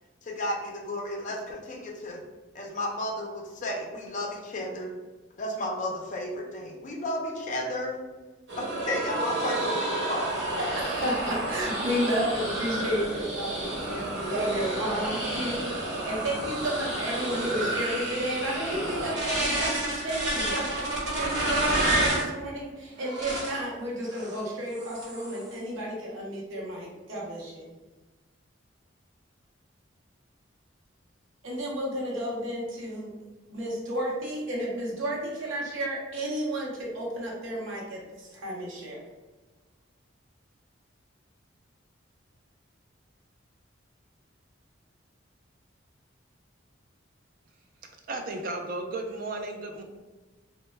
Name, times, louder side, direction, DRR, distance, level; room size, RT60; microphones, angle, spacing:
voice 1, 0.2-2.2 2.5-4.9 5.4-7.9 8.6-10.8, left 1 dB, 40° left, 0 dB, 0.4 m, -33 dB
sound 1, 8.5-22.3 23.0-23.6 24.1-24.4 24.7-25.5, right 1 dB, 65° right, 1.0 m, -30 dB
voice 2, 10.5-27.6 31.4-33.1 33.5-39.0, right 1 dB, 80° right, -4 dB, 0.7 m, -32 dB
voice 3, 48.1-49.8, right 2 dB, 45° right, 4 dB, 0.3 m, -34 dB
2.1 x 2.0 x 3.2 m, 1.2 s
head